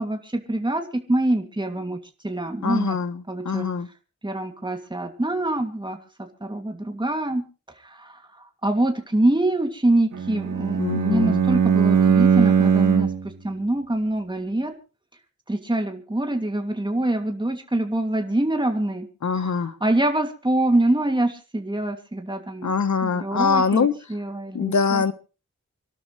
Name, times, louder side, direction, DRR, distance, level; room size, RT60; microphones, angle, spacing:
voice 1, 0.0-2.0 2.2-3.0 3.3-3.6 4.2-6.0 6.4-7.5 8.0-8.1 8.6-13.1 13.4-14.7 15.5-19.1 19.5-22.7 23.0-25.0, right 1 dB, 15° right, 2.7 m, -25 dB
voice 2, 2.6-3.9 10.8-11.4 19.2-19.8 22.6-23.9 24.5-25.1, left 5 dB, 75° left, 1.4 m, -23 dB
Bowed string instrument, 10.1-13.3, right 7 dB, 90° right, 2.1 m, -19 dB
26.5 x 12.5 x 3.3 m
cardioid pair, 65°, 29 cm